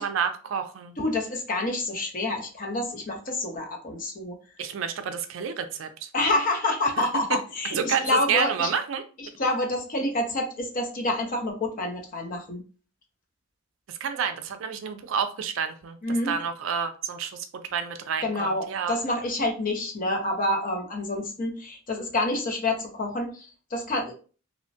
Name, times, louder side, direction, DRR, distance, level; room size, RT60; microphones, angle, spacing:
voice 1, 0.0-0.9 4.6-6.1 7.7-9.0 13.9-17.5 17.7-19.0, right 7 dB, 70° right, 0.4 m, -29 dB
voice 2, 1.0-4.4 6.1-8.7 9.4-12.6 16.0-16.3 18.2-24.1, left 2 dB, 40° left, 0.6 m, -28 dB
3.0 x 2.1 x 2.6 m
head